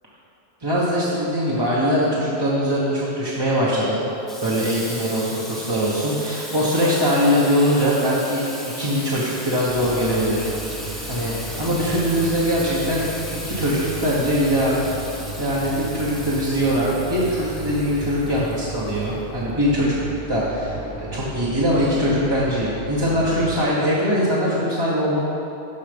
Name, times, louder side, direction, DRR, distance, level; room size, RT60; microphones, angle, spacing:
voice 1, 0.6-4.0 4.4-10.5 11.1-13.0 13.3-14.8 15.4-19.9 20.3-25.2, equal, 25° right, -7 dB, 1.1 m, -22 dB
Water tap faucet / Sink (filling or washing), 4.3-19.0, equal, ahead, 0.9 m, -36 dB
sound 1, 9.6-23.6, right 3 dB, 50° right, 1.3 m, -35 dB
12.5 x 4.7 x 5.2 m, 2.8 s
omnidirectional pair, 1.2 m